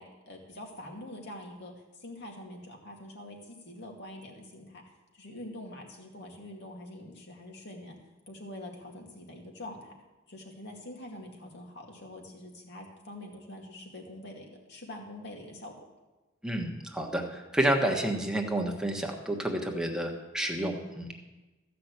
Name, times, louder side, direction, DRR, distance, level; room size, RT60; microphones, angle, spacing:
voice 1, 0.0-1.7 2.0-8.0 8.3-10.0 10.3-15.8, left 1 dB, 60° left, 1 dB, 2.3 m, -45 dB
voice 2, 16.4-21.1, right 1 dB, 5° right, 1 dB, 1.3 m, -30 dB
14.5 x 5.9 x 8.1 m, 1.1 s
head